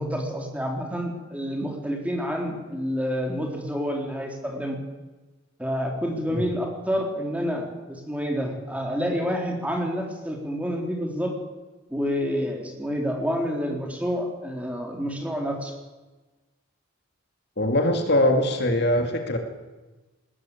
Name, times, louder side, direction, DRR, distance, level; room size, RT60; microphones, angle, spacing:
voice 1, 0.0-4.8 5.6-11.3 11.9-15.7, equal, 5° right, 1 dB, 3.5 m, -28 dB
voice 2, 17.6-19.4, left 1 dB, 50° left, 5 dB, 2.5 m, -22 dB
20.5 x 20.0 x 8.7 m, 1.2 s
head